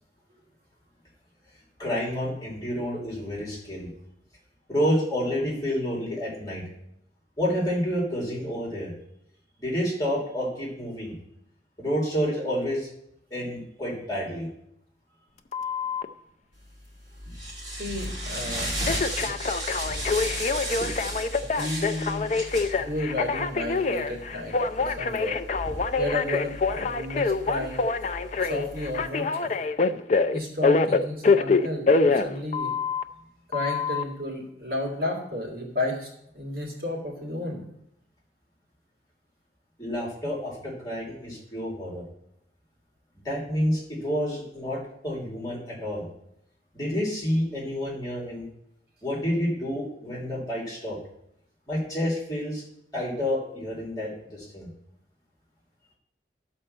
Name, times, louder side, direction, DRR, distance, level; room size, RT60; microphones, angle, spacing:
voice 1, 1.8-3.9 4.7-6.6 7.4-8.9 9.6-11.1 11.8-12.9 13.3-14.5 39.8-42.0 43.2-46.1 46.7-48.5 49.0-51.0 51.7-52.6 52.9-54.7, equal, 20° left, -5 dB, 2.9 m, -29 dB
Telephone, 15.5-16.1 18.8-33.0 33.5-34.0, left 4 dB, 40° left, 0.4 m, -25 dB
sound 1, 16.6-29.1, equal, 25° right, 2.7 m, -35 dB
voice 2, 17.7-18.8 19.2-19.3 21.6-22.4 22.7-25.4 26.0-27.9 28.3-29.6 30.3-32.7 33.5-37.6, left 1 dB, 55° right, -1 dB, 2.5 m, -32 dB
11.0 x 4.4 x 6.6 m, 0.78 s
head